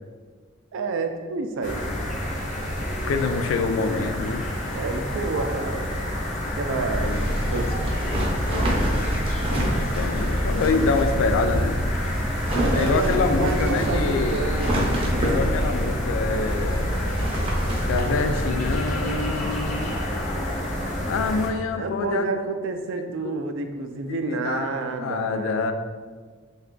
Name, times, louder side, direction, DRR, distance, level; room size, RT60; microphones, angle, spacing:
voice 1, 0.7-1.9 4.7-5.8 6.6-7.1 7.5-8.2 12.6-14.7 21.7-25.7, right 3 dB, 75° right, 6 dB, 0.4 m, -29 dB
sound 1, 1.6-21.5, left 1 dB, 40° left, 0.6 m, -29 dB
voice 2, 3.0-4.4 6.7-7.2 9.6-11.9 12.7-14.4 15.2-17.0 17.9-20.0 21.1-22.3 23.0-23.3 24.1-25.7, left 4 dB, 80° left, 8 dB, 0.3 m, -26 dB
sound 2, 6.9-18.8, equal, 30° right, 0.6 m, -26 dB
3.2 x 2.4 x 3.7 m, 1.5 s
head